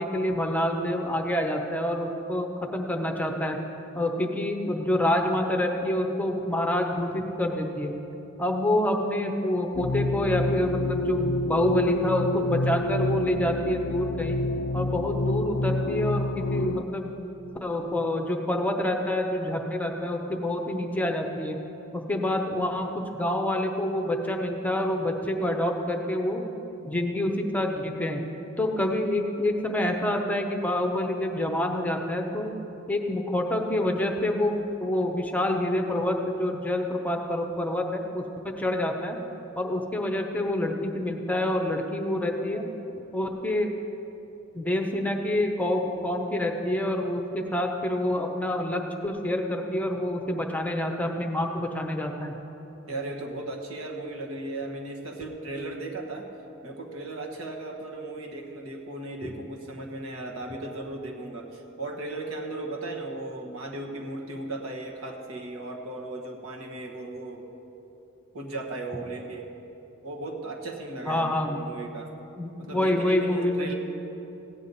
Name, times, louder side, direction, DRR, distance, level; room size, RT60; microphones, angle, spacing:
voice 1, 0.0-3.6 3.9-7.9 8.4-14.4 14.7-17.2 17.6-21.6 22.1-22.9 23.1-26.4 26.8-28.2 28.6-32.5 32.9-38.2 38.6-39.2 39.6-42.7 43.1-43.7 44.5-52.3 59.2-59.3 71.1-71.6 72.4-73.7, left 1 dB, 10° left, 3 dB, 0.8 m, -27 dB
sound 1, 9.7-16.8, left 2 dB, 80° left, 0.4 m, -28 dB
voice 2, 52.9-56.3 56.6-67.5 68.3-69.5 70.0-72.1 72.6-73.7, right 2 dB, 80° right, 1 dB, 1.4 m, -36 dB
16.0 x 9.3 x 4.1 m, 3.0 s
head